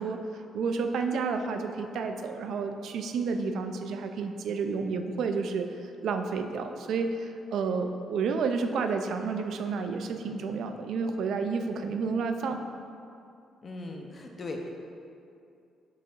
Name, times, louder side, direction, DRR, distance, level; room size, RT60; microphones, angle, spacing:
voice 1, 0.0-12.7, right 4 dB, 70° right, 6 dB, 0.4 m, -31 dB
voice 2, 13.6-14.7, left 2 dB, 40° left, 2 dB, 0.7 m, -38 dB
10.0 x 3.9 x 2.5 m, 2.5 s
cardioid pair, 90°, 0 cm